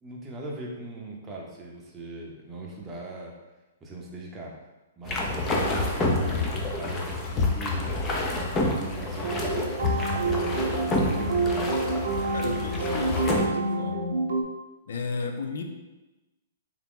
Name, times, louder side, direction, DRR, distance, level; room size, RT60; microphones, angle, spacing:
voice 1, 0.0-3.3 3.8-4.5 5.0-8.2 8.7-9.7 10.1-11.6, right 2 dB, 15° right, -2 dB, 0.7 m, -40 dB
sound 1, 5.0-13.5, left 2 dB, 20° left, 0.5 m, -28 dB
sound 2, 9.2-14.4, right 3 dB, 75° right, 0.7 m, -28 dB
voice 2, 12.3-14.1 14.9-15.6, left 4 dB, 75° left, 5 dB, 0.5 m, -34 dB
3.6 x 2.9 x 3.7 m, 1.1 s
hypercardioid pair, 150°, 0 cm